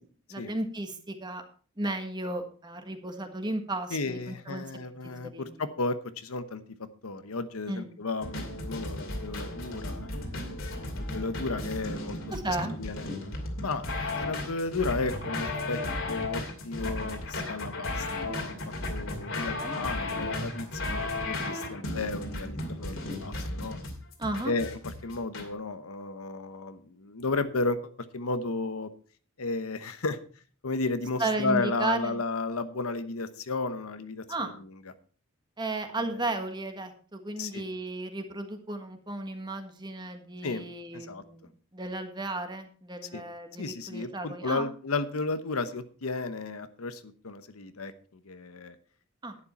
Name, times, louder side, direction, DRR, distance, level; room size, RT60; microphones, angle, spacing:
voice 1, 0.3-1.4 1.8-4.6 5.0-5.5 7.7-7.9 12.3-12.8 19.6-19.8 24.2-24.5 31.2-32.2 34.3-34.5 35.6-41.5 41.7-44.7 49.2-49.4, right 2 dB, 20° right, 6 dB, 1.5 m, -34 dB
voice 2, 3.9-6.6 7.0-12.2 12.5-13.1 13.6-15.8 16.1-18.5 18.9-23.8 24.4-27.8 28.1-28.9 29.4-30.2 30.6-34.7 35.9-36.3 37.4-37.6 40.4-40.6 40.9-41.2 43.1-43.2 43.6-47.9 48.2-48.8, left 3 dB, 85° left, 11 dB, 1.0 m, -33 dB
sound 1, 8.2-25.5, left 2 dB, 65° left, 2.5 m, -34 dB
11.0 x 9.9 x 4.3 m, 0.42 s
head